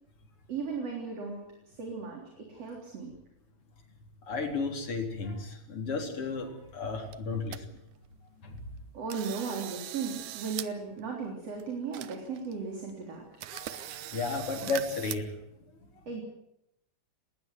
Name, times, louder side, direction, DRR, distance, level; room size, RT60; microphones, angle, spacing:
voice 1, 0.5-1.4 1.8-3.1 8.9-13.2 16.1-16.2, right 5 dB, 55° right, 1 dB, 4.7 m, -36 dB
voice 2, 4.3-7.8 8.4-8.6 13.5-15.3, left 4 dB, 45° left, 3 dB, 4.6 m, -34 dB
sound 1, 6.8-6.9 7.1-7.6 8.0-8.1 8.6-8.8 9.1-10.7 11.0-11.1 11.6-11.7 11.9-12.5 12.9-13.0 13.4-15.2, right 13 dB, 85° right, 2.4 m, -40 dB
19.5 x 19.5 x 9.4 m, 0.81 s
omnidirectional pair, 3.4 m